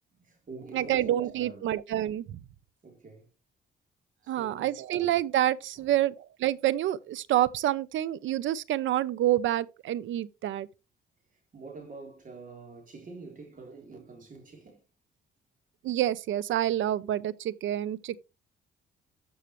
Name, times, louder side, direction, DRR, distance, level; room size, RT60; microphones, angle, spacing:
voice 1, 0.1-1.8 2.8-3.3 4.2-4.8 5.8-5.9 11.5-14.8, right 3 dB, 40° right, 3.6 m, -46 dB
voice 2, 0.7-2.4 4.3-10.7 15.8-18.2, right 12 dB, 75° right, 0.7 m, -28 dB
12.5 x 6.4 x 3.1 m
cardioid pair, 90°, 20 cm